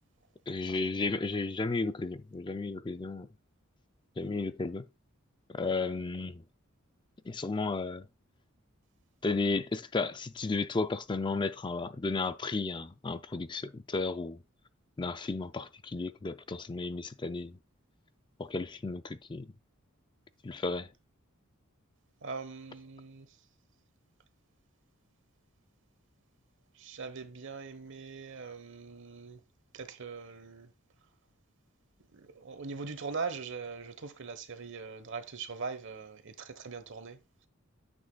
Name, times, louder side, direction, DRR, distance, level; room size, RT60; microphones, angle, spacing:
voice 1, 0.5-3.3 4.2-4.9 5.5-6.4 7.3-8.1 9.2-14.4 15.0-17.6 18.4-19.5 20.4-20.9, left 3 dB, 20° left, 0.4 m, -33 dB
voice 2, 22.2-23.3 26.8-29.4 29.7-30.7 32.1-37.2, right 4 dB, 60° right, 1.2 m, -41 dB
9.6 x 8.1 x 2.3 m
head